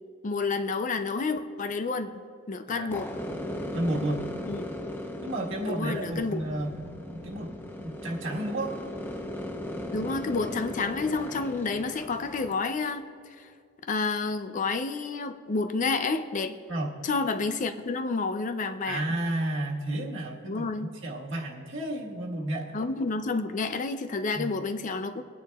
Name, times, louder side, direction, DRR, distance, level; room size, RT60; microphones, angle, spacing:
voice 1, 0.2-2.1 2.5-3.1 4.5-4.7 5.7-6.5 9.9-13.1 13.9-16.6 17.0-19.0 20.5-20.9 22.7-25.2, left 4 dB, 35° left, 9 dB, 0.4 m, -29 dB
sound 1, 2.9-12.5, left 1 dB, 10° left, 0.7 m, -37 dB
voice 2, 3.7-4.2 5.2-7.5 7.8-8.9 16.7-16.9 18.8-20.7 21.0-22.8 24.3-24.5, right 1 dB, 60° right, -1 dB, 1.5 m, -32 dB
22.0 x 9.5 x 2.3 m, 2.3 s
head